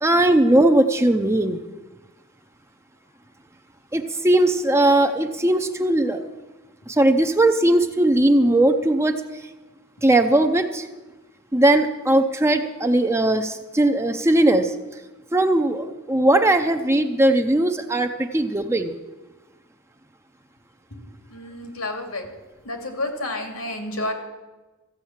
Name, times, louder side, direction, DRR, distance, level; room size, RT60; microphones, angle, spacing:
voice 1, 0.0-1.6 3.9-6.2 6.9-9.1 10.0-10.9 11.5-14.7 15.3-18.9, right 1 dB, 10° right, 7 dB, 0.5 m, -19 dB
voice 2, 20.9-22.3 22.6-24.1, left 2 dB, 90° left, 4 dB, 2.5 m, -30 dB
14.5 x 8.2 x 7.3 m, 1.2 s
head